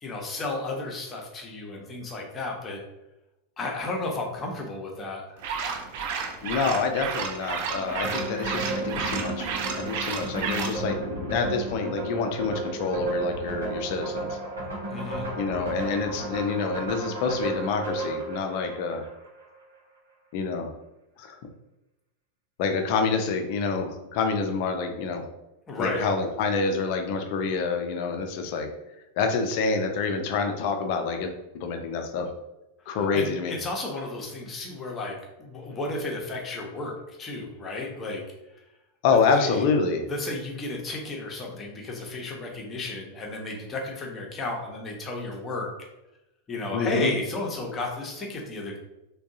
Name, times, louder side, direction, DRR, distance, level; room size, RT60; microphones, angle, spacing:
voice 1, 0.0-2.8 3.6-5.4 14.9-15.3 25.7-26.1 32.9-38.2 39.4-39.6 40.1-45.7 46.5-48.8, left 2 dB, 20° left, 0 dB, 0.8 m, -33 dB
sound 1, 5.4-10.8, right 6 dB, 55° right, 0.4 m, -32 dB
voice 2, 6.4-9.5 9.8-14.4 15.4-19.1 20.3-20.7 21.2-21.4 22.6-25.2 25.8-28.7 29.2-32.3 32.9-33.6 39.0-40.0 46.7-47.1, left 4 dB, 45° left, 5 dB, 0.5 m, -27 dB
sound 2, 7.7-19.5, right 2 dB, 75° right, 0.9 m, -33 dB
3.5 x 2.3 x 2.6 m, 0.94 s
figure-of-eight pair, 90°, 0 cm